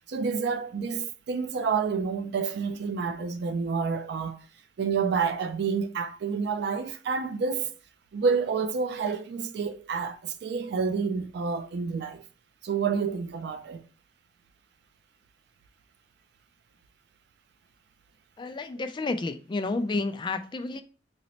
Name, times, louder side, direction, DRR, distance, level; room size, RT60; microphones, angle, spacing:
voice 1, 0.1-4.4 4.8-7.7 8.1-12.2 12.6-13.8, right 5 dB, 60° right, 0.3 m, -29 dB
voice 2, 18.4-20.8, left 3 dB, 25° left, 0.3 m, -30 dB
3.9 x 2.1 x 2.8 m
head